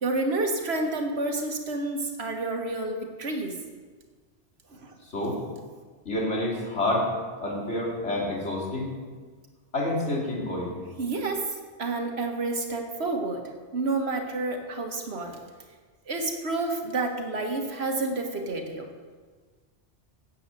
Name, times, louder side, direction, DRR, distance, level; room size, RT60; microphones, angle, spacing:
voice 1, 0.0-3.6 4.8-5.0 11.0-13.4 13.7-15.4 16.1-18.9, right 2 dB, 60° right, 3 dB, 1.7 m, -29 dB
voice 2, 5.1-5.4 6.0-7.1 7.4-8.9 9.7-10.8, left 1 dB, 75° left, -3 dB, 3.1 m, -28 dB
9.9 x 7.2 x 8.2 m, 1.5 s
omnidirectional pair, 1.2 m